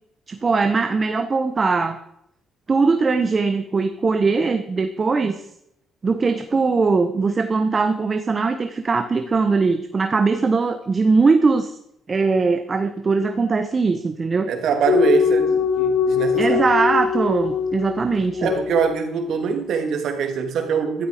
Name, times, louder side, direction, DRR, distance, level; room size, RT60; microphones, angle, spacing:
voice 1, 0.3-2.0 2.7-5.4 6.0-11.8 12.1-14.5 16.4-18.5, right 4 dB, 35° right, 8 dB, 1.1 m, -20 dB
voice 2, 14.5-16.7 18.4-21.1, right 6 dB, 70° right, 6 dB, 2.6 m, -23 dB
sound 1, 14.9-19.0, left 6 dB, 70° left, 0.7 m, -21 dB
13.0 x 12.5 x 5.0 m, 0.77 s
cardioid pair, 90°, 0 cm